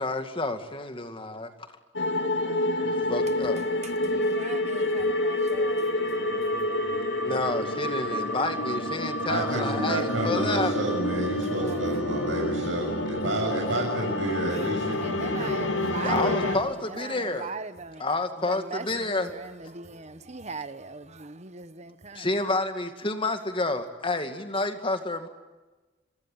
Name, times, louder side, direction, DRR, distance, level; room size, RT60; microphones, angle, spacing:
voice 1, 0.0-1.5 2.8-3.6 7.2-10.7 16.0-17.5 18.0-19.3 22.1-25.3, left 2 dB, 25° left, 2.3 m, -29 dB
sound 1, 2.0-16.6, left 1 dB, 75° left, 2.4 m, -28 dB
voice 2, 3.8-6.6 11.5-12.0 14.5-14.7 15.0-18.0 18.5-22.3, right 4 dB, 35° right, 1.2 m, -39 dB
voice 3, 9.3-16.6, right 2 dB, 80° right, 7.3 m, -30 dB
27.5 x 23.5 x 9.2 m
head